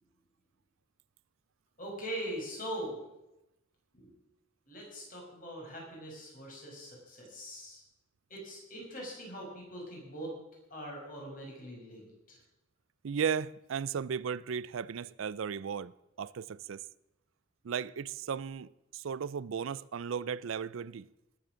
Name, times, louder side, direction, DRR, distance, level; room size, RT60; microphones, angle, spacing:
voice 1, 1.8-3.0 3.9-4.1 4.7-7.8 8.3-10.3 10.7-12.4, right 1 dB, 45° left, 5.5 m, -42 dB
voice 2, 13.0-15.9 16.2-16.9 17.6-21.1, right 7 dB, 85° right, 0.4 m, -35 dB
19.0 x 7.8 x 6.3 m
head